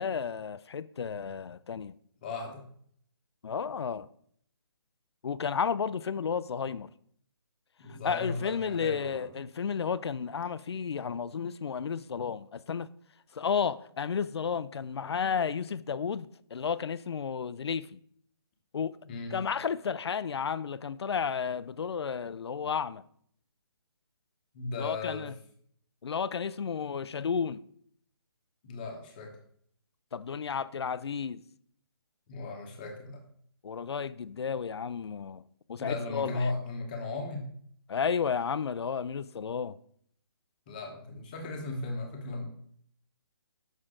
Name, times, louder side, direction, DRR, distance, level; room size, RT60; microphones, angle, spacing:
voice 1, 0.0-1.9 3.4-4.1 5.2-6.9 8.0-12.9 13.3-16.3 16.5-18.0 18.7-19.0 19.3-23.0 24.8-25.3 26.0-27.6 30.1-31.4 33.6-35.4 35.7-36.5 37.9-39.8, left 6 dB, 75° left, 0.4 m, -32 dB
voice 2, 2.2-2.7 7.8-9.3 19.1-19.4 24.5-25.3 28.6-29.3 32.3-33.2 35.8-37.5 40.7-42.4, left 3 dB, 20° left, 1.0 m, -36 dB
6.5 x 6.0 x 3.7 m
hypercardioid pair, 170°, 14 cm